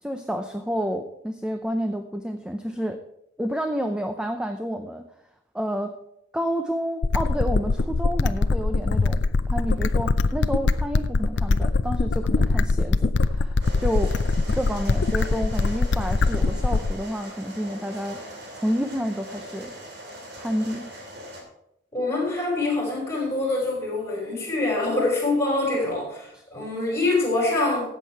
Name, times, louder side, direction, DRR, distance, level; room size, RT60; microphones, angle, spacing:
voice 1, 0.0-3.0 3.4-5.0 5.5-6.0 6.3-14.2 14.5-18.2 18.5-19.7 20.4-20.9 25.6-25.9 26.3-26.4, equal, 5° right, 6 dB, 0.6 m, -29 dB
sound 1, 7.0-17.0, left 3 dB, 65° left, 0.5 m, -22 dB
sound 2, 13.6-21.4, right 1 dB, 60° right, 2.9 m, -41 dB
voice 2, 21.9-26.1 26.5-27.9, left 2 dB, 15° left, -4 dB, 5.4 m, -24 dB
13.5 x 8.4 x 4.6 m, 0.81 s
head